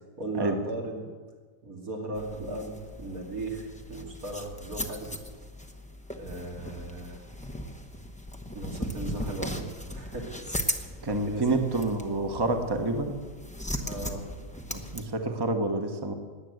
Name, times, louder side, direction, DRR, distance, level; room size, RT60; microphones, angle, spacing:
voice 1, 0.2-1.1 1.6-5.1 6.1-7.2 8.5-10.3 10.6-11.6 13.8-14.3, right 2 dB, 80° right, 0 dB, 3.1 m, -37 dB
sound 1, 2.1-15.0, equal, 5° left, 0.8 m, -38 dB
voice 2, 11.0-13.2 14.7-16.1, right 2 dB, 20° right, 5 dB, 1.1 m, -28 dB
20.0 x 8.5 x 7.9 m, 1.5 s
omnidirectional pair, 1.5 m